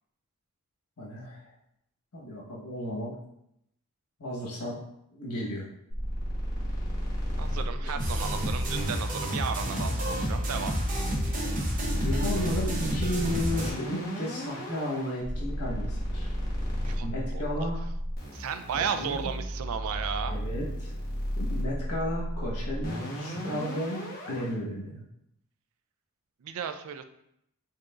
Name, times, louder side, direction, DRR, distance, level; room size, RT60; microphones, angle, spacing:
voice 1, 1.0-1.5 2.1-3.1 4.2-4.8 5.2-5.7 7.8-8.0 12.0-16.3 17.0-17.8 18.7-19.3 20.3-20.9 21.4-25.0, equal, 90° left, -4 dB, 1.2 m, -34 dB
sound 1, 5.9-24.5, equal, 40° left, 1.1 m, -34 dB
voice 2, 7.4-10.7 16.8-17.7 18.3-20.4 26.4-27.0, right 7 dB, 70° right, 9 dB, 0.3 m, -34 dB
sound 2, 8.0-13.7, equal, 35° right, 0.7 m, -30 dB
4.7 x 2.9 x 2.4 m, 0.77 s
head